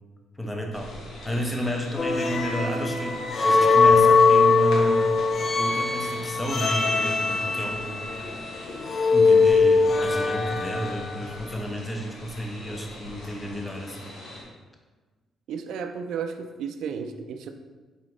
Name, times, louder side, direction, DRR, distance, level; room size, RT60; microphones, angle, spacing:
voice 1, 0.4-0.9 1.2-5.2 5.6-8.1 9.1-14.1, equal, 10° left, 1 dB, 0.7 m, -31 dB
sound 1, 0.7-14.4, left 1 dB, 80° left, 0.9 m, -42 dB
sound 2, 2.0-11.2, left 4 dB, 40° left, 0.5 m, -21 dB
voice 2, 15.5-17.5, right 6 dB, 80° right, 7 dB, 0.3 m, -33 dB
4.1 x 3.6 x 3.1 m, 1.3 s
cardioid pair, 90°, 0 cm